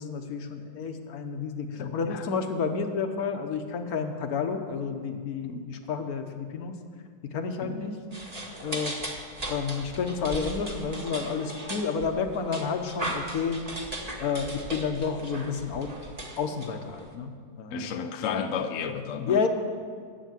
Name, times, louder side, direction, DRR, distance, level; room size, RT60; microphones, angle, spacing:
voice 1, 0.0-6.8 7.2-8.0 8.6-9.1 9.5-13.6 14.2-15.9 16.4-17.9 19.3-19.5, left 5 dB, 55° left, 6 dB, 1.3 m, -30 dB
voice 2, 1.8-2.3 5.4-5.7 7.6-7.9 17.7-19.4, left 6 dB, 75° left, 7 dB, 0.7 m, -32 dB
sound 1, 8.1-17.1, right 1 dB, 25° right, 1.1 m, -37 dB
11.5 x 7.9 x 7.5 m, 2.1 s
omnidirectional pair, 2.1 m